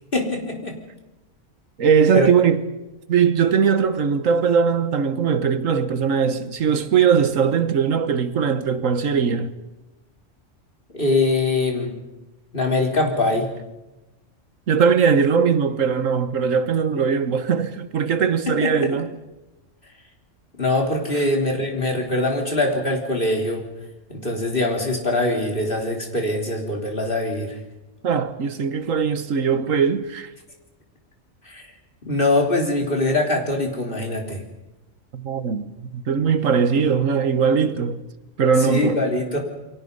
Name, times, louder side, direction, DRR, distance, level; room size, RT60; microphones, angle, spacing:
voice 1, 0.1-0.8 2.1-2.3 10.9-12.0 12.5-13.5 18.5-18.9 20.6-23.7 24.1-27.6 31.4-31.7 32.0-34.4 38.6-39.4, left 2 dB, 45° left, 4.0 m, -23 dB
voice 2, 1.8-2.6 3.1-9.5 14.7-19.1 28.0-30.3 35.1-38.0 38.4-39.0, right 6 dB, 85° right, 1.6 m, -20 dB
29.5 x 23.0 x 5.5 m
omnidirectional pair, 1.3 m